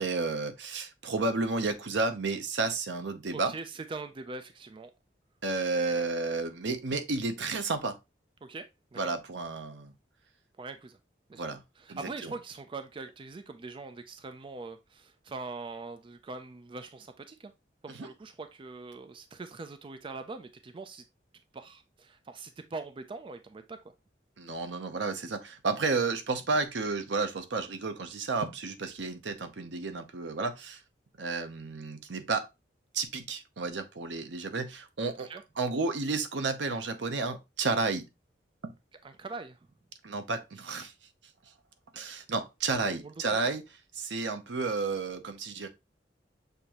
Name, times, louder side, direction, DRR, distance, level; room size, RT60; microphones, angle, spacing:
voice 1, 0.0-3.5 5.4-8.0 9.0-9.9 11.3-11.6 11.9-12.3 17.9-18.1 24.4-30.8 31.2-32.5 32.9-35.3 35.6-38.0 38.6-38.7 40.0-40.9 41.9-43.6 43.9-45.7, right 3 dB, 80° right, 0.7 m, -32 dB
voice 2, 3.3-4.9 8.4-8.7 8.9-9.2 10.6-11.0 11.3-11.4 11.8-17.5 17.8-21.0 21.5-23.9 35.3-35.4 39.0-39.6 43.0-43.5, right 3 dB, 30° right, 0.4 m, -42 dB
6.6 x 2.7 x 2.9 m
head